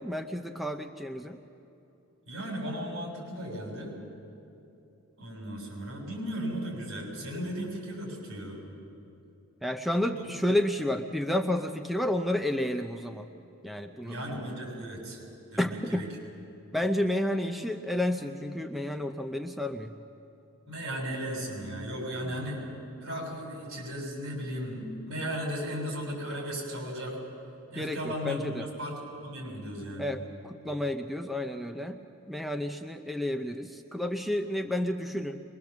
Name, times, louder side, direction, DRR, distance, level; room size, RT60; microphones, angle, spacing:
voice 1, 0.0-1.4 9.6-13.3 13.6-14.2 15.6-16.1 16.7-19.9 27.8-28.7 30.0-32.0 32.3-35.4, left 1 dB, ahead, 6 dB, 0.6 m, -31 dB
voice 2, 2.3-3.9 5.2-8.6 10.0-10.2 14.0-15.2 15.5-16.1 20.7-22.7 23.0-27.2 27.7-29.0 29.2-30.1, equal, 70° right, 0 dB, 7.0 m, -36 dB
23.5 x 22.0 x 7.2 m, 2.7 s
head